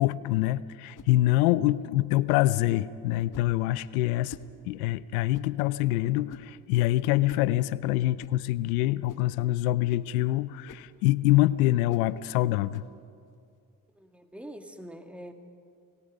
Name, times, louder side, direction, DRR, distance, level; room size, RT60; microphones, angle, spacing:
voice 1, 0.0-4.4 4.6-12.8, left 16 dB, 90° left, 18 dB, 0.6 m, -25 dB
sound 1, 0.9-1.2 2.3-2.5 3.3-3.6 4.3-4.5 5.3-5.6 6.3-6.6 7.3-7.5 8.2-8.4 9.1-9.3 9.9-10.1 10.7-10.9 11.9-12.1 12.7-12.9, left 6 dB, 50° left, 1.7 m, -47 dB
voice 2, 13.9-15.3, right 1 dB, 5° right, 6 dB, 2.0 m, -44 dB
29.5 x 18.0 x 5.2 m, 2.4 s
hypercardioid pair, 45°, 41 cm